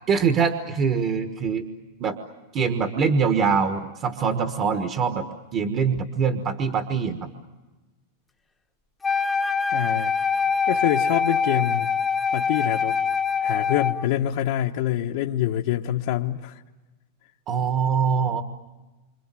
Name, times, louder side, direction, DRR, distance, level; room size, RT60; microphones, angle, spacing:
voice 1, 0.1-1.7 2.0-2.2 2.5-7.3 17.5-18.4, right 6 dB, 25° right, 6 dB, 1.4 m, -23 dB
Wind instrument woodwind instrument, 9.0-14.1, left 5 dB, 10° left, 1.0 m, -24 dB
voice 2, 9.7-10.1 10.7-11.9 12.3-13.0 13.4-16.5, left 12 dB, 55° left, 1 dB, 1.1 m, -25 dB
28.5 x 26.5 x 7.6 m, 1.2 s
supercardioid pair, 165°, 0 cm